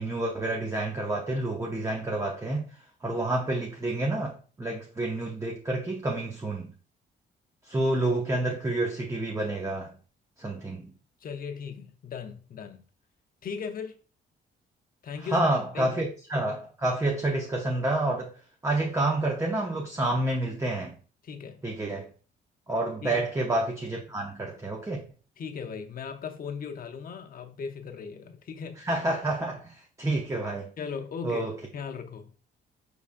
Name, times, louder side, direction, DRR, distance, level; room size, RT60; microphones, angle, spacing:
voice 1, 0.0-6.7 7.6-10.0 10.4-10.9 15.3-18.3 18.6-21.0 21.6-22.1 22.7-25.0 28.8-30.7 31.2-31.5, right 2 dB, 15° right, 0.7 m, -29 dB
voice 2, 11.2-12.8 13.4-14.0 15.0-15.5 15.7-16.0 21.2-21.6 23.0-23.3 25.4-28.8 30.8-32.4, left 6 dB, 45° left, 0.7 m, -38 dB
5.0 x 3.3 x 2.5 m
cardioid pair, 90°, 20 cm